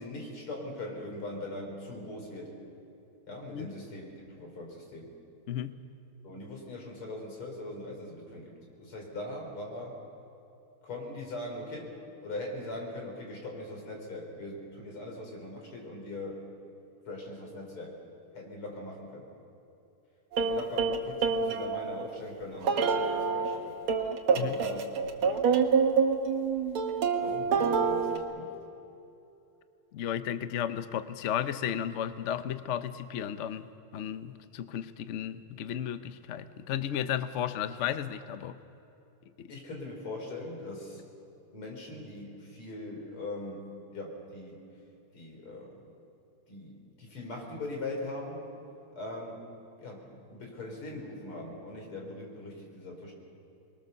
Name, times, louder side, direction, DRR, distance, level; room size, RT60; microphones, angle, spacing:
voice 1, 0.0-2.5 3.3-5.1 6.2-10.0 10.8-16.5 17.1-17.9 18.3-19.3 20.4-23.8 24.3-24.9 25.2-25.4 27.2-28.6 39.5-41.1 41.5-44.6 45.1-45.9 46.5-48.5 48.9-49.4 49.8-53.1, left 2 dB, 90° left, 0 dB, 4.9 m, -41 dB
sound 1, 20.3-22.0 22.6-23.6 23.9-28.2, right 5 dB, 75° right, 2.1 m, -27 dB
voice 2, 29.9-38.6 39.4-39.5, left 9 dB, 70° left, 11 dB, 0.7 m, -34 dB
24.5 x 21.5 x 6.8 m, 2.8 s
omnidirectional pair, 2.3 m